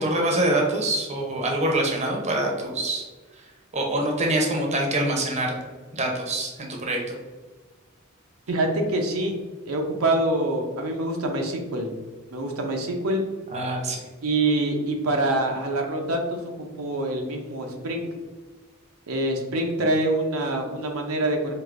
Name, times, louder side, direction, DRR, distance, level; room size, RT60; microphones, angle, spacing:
voice 1, 0.0-3.0 3.7-5.6 5.9-7.2 13.5-14.0, right 1 dB, 30° right, 0 dB, 0.7 m, -25 dB
voice 2, 8.5-9.3 9.7-11.9 12.3-13.2 14.2-18.1 19.1-21.5, right 1 dB, 85° right, 2 dB, 0.6 m, -25 dB
4.8 x 2.6 x 2.5 m, 1.4 s
head